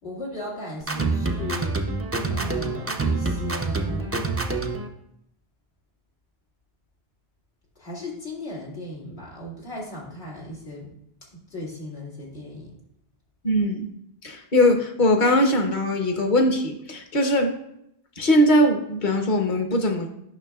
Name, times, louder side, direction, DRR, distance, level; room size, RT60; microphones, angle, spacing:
voice 1, 0.0-1.9 2.3-4.1 7.8-10.9 11.3-12.7, left 1 dB, 90° left, -5 dB, 2.5 m, -36 dB
sound 1, 0.8-4.9, right 3 dB, 20° right, 0.3 m, -26 dB
voice 2, 13.4-13.9 14.2-17.5 18.2-20.1, left 1 dB, 50° left, 5 dB, 1.0 m, -20 dB
9.4 x 6.0 x 2.3 m, 0.76 s
omnidirectional pair, 1.0 m